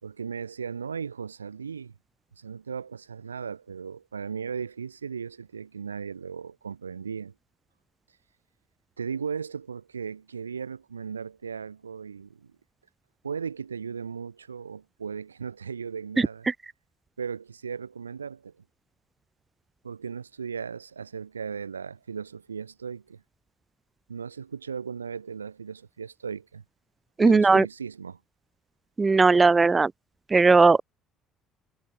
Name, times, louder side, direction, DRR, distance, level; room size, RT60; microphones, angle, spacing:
voice 1, 0.0-1.9 2.4-7.3 9.0-12.5 13.2-16.5 17.2-18.5 19.8-23.2 24.1-26.6 27.2-28.2, right 6 dB, 80° right, 6.3 m, -36 dB
voice 2, 27.2-27.6 29.0-29.9 30.3-30.8, right 4 dB, 25° right, 4.9 m, -18 dB
figure-of-eight pair, 55°, 0 cm